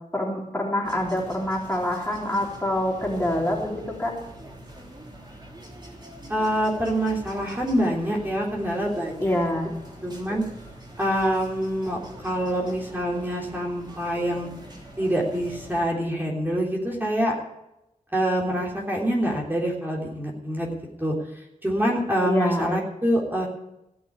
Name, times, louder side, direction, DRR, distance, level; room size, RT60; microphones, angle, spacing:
voice 1, 0.1-4.1 9.2-9.7 22.3-22.7, left 1 dB, 15° left, -2 dB, 3.8 m, -26 dB
sound 1, 0.8-15.9, right 1 dB, 30° right, 3.2 m, -44 dB
voice 2, 6.3-9.3 10.0-10.4 11.0-14.5 15.0-17.3 18.1-20.7 21.0-21.1 21.6-23.5, equal, 15° right, -3 dB, 3.4 m, -25 dB
16.5 x 6.3 x 8.3 m, 0.88 s
wide cardioid pair, 65°, 14 cm